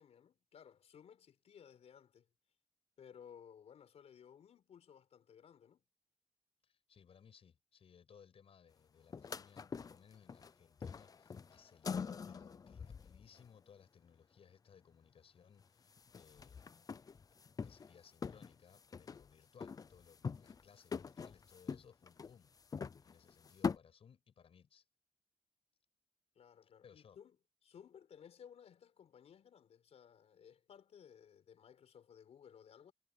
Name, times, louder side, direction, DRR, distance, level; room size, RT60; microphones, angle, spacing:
voice 1, 0.0-2.3 3.0-5.8 26.3-27.4 27.6-32.9, left 8 dB, 85° left, 4.9 m, -59 dB
voice 2, 6.6-16.8 17.6-22.5 23.0-24.8 26.6-27.2, left 7 dB, 65° left, 6.9 m, -63 dB
sound 1, 9.1-10.5 10.8-13.5 15.6-15.7 15.9-18.0 18.2-19.3 19.6-20.7 20.9-23.8, left 6 dB, 35° left, 0.5 m, -44 dB
wide cardioid pair, 165°, 11 cm